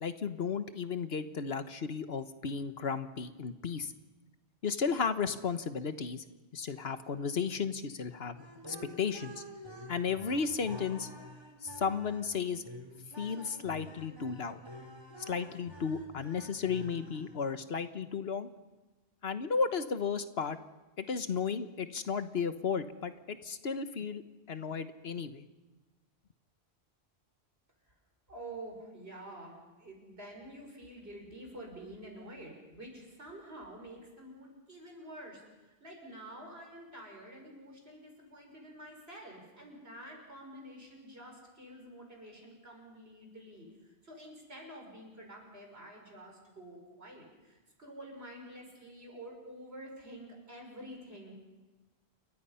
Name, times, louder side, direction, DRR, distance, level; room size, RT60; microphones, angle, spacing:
voice 1, 0.0-3.9 4.6-6.2 6.5-8.4 8.7-9.4 9.9-11.1 11.6-12.6 13.2-14.6 15.3-18.5 19.2-20.6 21.0-24.2 24.5-25.5, left 6 dB, 70° left, 10 dB, 1.3 m, -34 dB
sound 1, 8.3-17.6, equal, 25° right, 2.9 m, -49 dB
voice 2, 28.3-43.7 44.0-51.3, right 1 dB, 70° right, 1 dB, 6.2 m, -48 dB
28.5 x 22.5 x 5.7 m, 1.2 s
omnidirectional pair, 1.1 m